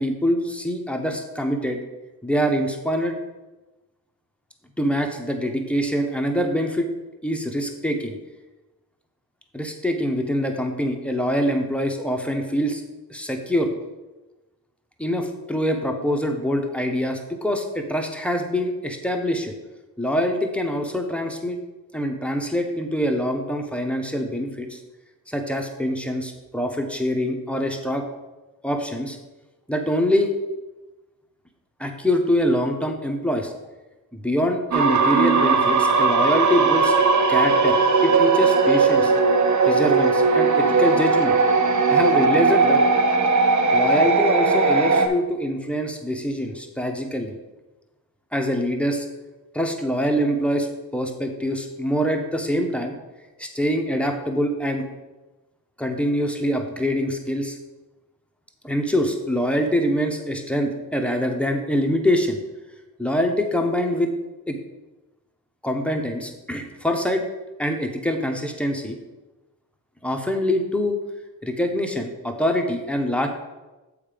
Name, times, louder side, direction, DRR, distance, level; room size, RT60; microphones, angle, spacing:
voice 1, 0.0-1.8 2.2-3.2 4.8-6.9 7.2-8.2 9.5-12.8 13.1-13.7 15.0-19.5 20.0-21.6 21.9-24.8 25.3-28.0 28.6-29.2 29.7-30.3 31.8-33.5 34.1-36.9 37.3-37.8 38.0-39.1 39.6-41.4 41.9-42.8 43.7-47.4 48.3-49.1 49.5-52.9 53.4-54.8 55.8-57.6 58.6-62.4 63.0-64.1 64.5-64.6 65.6-67.2 67.6-69.0 70.0-71.0 71.4-73.3, equal, 5° left, 4 dB, 1.1 m, -24 dB
sound 1, 34.7-45.1, right 4 dB, 50° right, 0.9 m, -18 dB
7.1 x 4.7 x 5.2 m, 1.1 s
cardioid pair, 60°, 36 cm